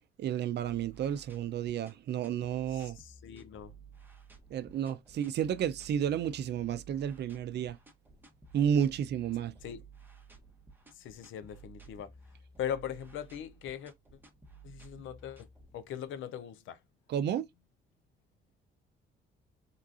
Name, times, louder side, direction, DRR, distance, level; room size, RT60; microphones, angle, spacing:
voice 1, 0.2-3.0 4.5-7.8 8.5-9.5 17.1-17.5, right 9 dB, 60° right, 0.4 m, -31 dB
sound 1, 0.6-16.2, right 4 dB, 10° right, 0.8 m, -55 dB
voice 2, 2.7-3.7 9.6-9.8 11.0-12.1 12.6-13.9 14.6-15.5 15.7-16.8, left 9 dB, 80° left, 0.5 m, -40 dB
3.7 x 2.3 x 2.4 m
cardioid pair, 90°, 20 cm